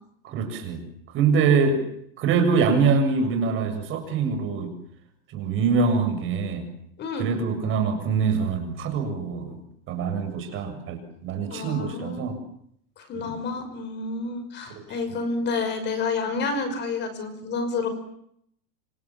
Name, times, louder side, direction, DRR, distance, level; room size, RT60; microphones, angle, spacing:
voice 1, 0.2-0.8 1.1-1.8 2.2-4.7 5.3-6.7 7.2-9.6 9.9-12.3 13.1-13.3 14.8-14.9, right 5 dB, 25° right, 7 dB, 7.3 m, -24 dB
voice 2, 11.5-12.3 13.0-17.9, left 4 dB, 20° left, 10 dB, 6.1 m, -29 dB
29.0 x 27.5 x 7.5 m, 0.72 s
supercardioid pair, 165°, 47 cm